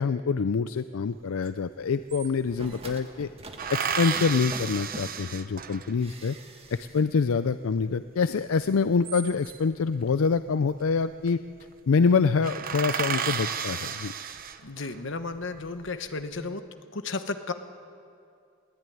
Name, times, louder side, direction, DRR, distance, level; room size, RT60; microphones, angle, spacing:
voice 1, 0.0-3.3 3.7-6.4 6.7-11.4 11.9-14.1, left 5 dB, 80° left, 13 dB, 0.5 m, -25 dB
sound 1, 1.5-1.6 1.8-2.8 3.6-6.1 8.8-9.7 10.9-11.3 11.6-11.7 12.1-12.2 12.4-15.0 15.5-16.2, right 7 dB, 45° right, 0.9 m, -33 dB
sound 2, 2.3-5.3 6.0-7.0 7.3-7.4, right 2 dB, 30° right, 1.9 m, -45 dB
voice 2, 14.6-16.6 16.9-17.5, left 3 dB, 65° left, 9 dB, 1.2 m, -33 dB
21.5 x 17.0 x 9.3 m, 2.5 s
head